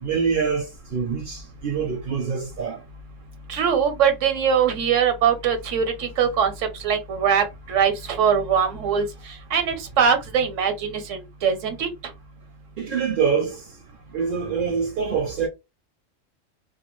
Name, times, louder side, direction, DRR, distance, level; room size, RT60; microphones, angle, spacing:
voice 1, 0.0-2.8 12.8-13.6 14.1-15.5, right 6 dB, 60° right, 0.6 m, -25 dB
voice 2, 3.5-11.9, right 7 dB, 85° right, 1.1 m, -22 dB
2.4 x 2.2 x 2.9 m
omnidirectional pair, 1.2 m